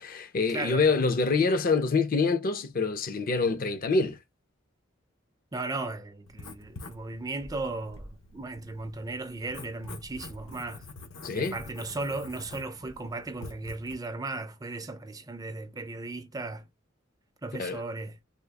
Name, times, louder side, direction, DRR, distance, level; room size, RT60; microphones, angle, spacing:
voice 1, 0.0-4.2 11.2-11.6 17.6-17.8, left 4 dB, 45° left, 0.5 m, -26 dB
voice 2, 0.5-0.9 5.5-10.8 11.3-16.7 17.4-18.2, right 3 dB, 20° right, 0.4 m, -36 dB
Writing, 6.3-13.9, left 2 dB, 75° left, 0.9 m, -46 dB
3.7 x 2.3 x 3.4 m
head